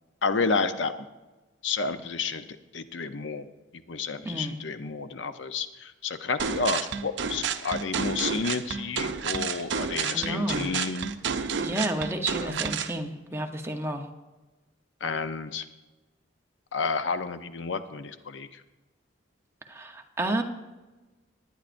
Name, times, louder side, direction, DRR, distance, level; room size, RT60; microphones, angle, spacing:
voice 1, 0.2-0.9 1.6-2.4 2.7-3.5 3.9-11.1 12.4-12.5 15.0-15.7 16.7-18.5, left 4 dB, 80° left, 10 dB, 0.7 m, -30 dB
voice 2, 4.2-4.6 10.1-10.7 11.6-14.0 19.7-20.4, right 1 dB, 15° right, 4 dB, 0.8 m, -31 dB
sound 1, 6.4-12.9, right 6 dB, 75° right, 0.6 m, -30 dB
19.0 x 10.0 x 2.6 m, 1.2 s
head